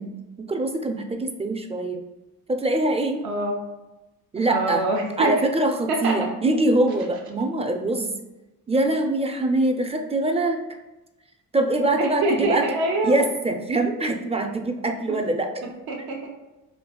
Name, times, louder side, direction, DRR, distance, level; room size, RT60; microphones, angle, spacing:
voice 1, 0.0-2.0 2.5-3.2 4.3-4.9 5.2-8.1 8.7-10.6 11.5-15.5, right 2 dB, 15° right, 4 dB, 0.5 m, -23 dB
voice 2, 3.2-3.6 4.5-5.4 5.9-6.2 12.0-13.2 15.9-16.3, right 2 dB, 75° right, 1 dB, 0.9 m, -25 dB
4.5 x 2.7 x 2.3 m, 1.0 s
supercardioid pair, 65°, 38 cm